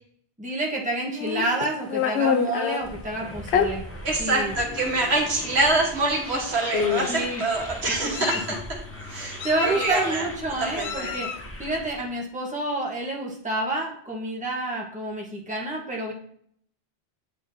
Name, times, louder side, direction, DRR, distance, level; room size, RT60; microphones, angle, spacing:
voice 1, 0.4-3.8 4.2-4.5 7.1-7.4 7.9-8.1 9.1-11.3 11.6-16.1, right 2 dB, 5° right, -2 dB, 1.1 m, -29 dB
Meow, 1.2-2.8 3.5-3.7 4.5-4.6 5.0-5.2 6.2-6.4 6.7-7.3 7.9-8.6 9.4-10.1 10.8-11.5, left 7 dB, 90° left, 0.9 m, -27 dB
sound 1, 2.8-12.2, left 1 dB, 15° left, 0.6 m, -39 dB
voice 2, 4.0-8.8 9.1-10.2 10.6-11.2, right 2 dB, 75° right, 0 dB, 1.6 m, -25 dB
8.7 x 4.7 x 2.7 m, 0.66 s
omnidirectional pair, 1.1 m